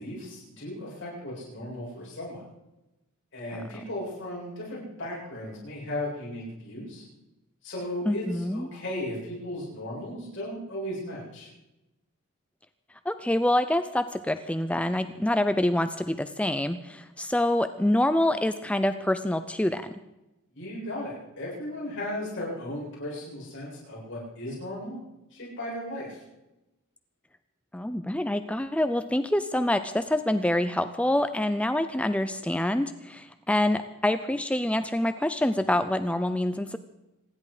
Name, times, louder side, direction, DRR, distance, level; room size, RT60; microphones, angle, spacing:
voice 1, 0.0-2.4 3.3-7.0 7.6-11.5 20.5-25.0 25.3-26.2, left 1 dB, 55° left, -6 dB, 7.6 m, -36 dB
voice 2, 8.1-8.7 13.1-19.9 27.7-36.8, left 1 dB, 5° left, 10 dB, 0.5 m, -26 dB
26.5 x 11.0 x 4.9 m, 0.97 s
head